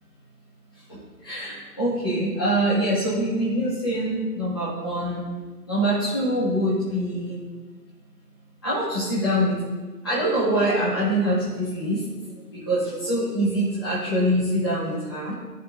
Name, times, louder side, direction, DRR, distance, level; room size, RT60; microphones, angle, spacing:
voice 1, 0.7-5.2 5.7-7.4 8.6-9.6 10.0-12.0 12.5-15.3, right 1 dB, 15° left, -12 dB, 1.3 m, -24 dB
16.0 x 6.0 x 2.4 m, 1.3 s
figure-of-eight pair, 170°, 48 cm